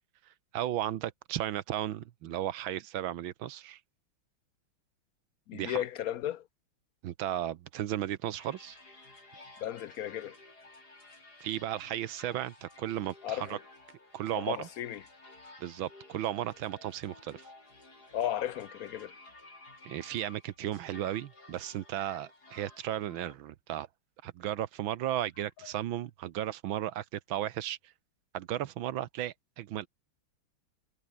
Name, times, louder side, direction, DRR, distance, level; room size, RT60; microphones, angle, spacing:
voice 1, 0.5-3.8 5.5-5.8 7.0-8.8 11.4-13.6 14.1-14.7 15.6-17.5 19.8-23.9 24.2-27.8 28.3-29.9, right 12 dB, 75° right, 1.6 m, -35 dB
voice 2, 5.5-6.5 9.6-10.4 13.2-13.6 14.3-15.0 18.1-19.1, left 11 dB, 75° left, 0.8 m, -35 dB
sound 1, 8.4-23.4, left 2 dB, 50° left, 7.0 m, -54 dB
omnidirectional pair, 2.3 m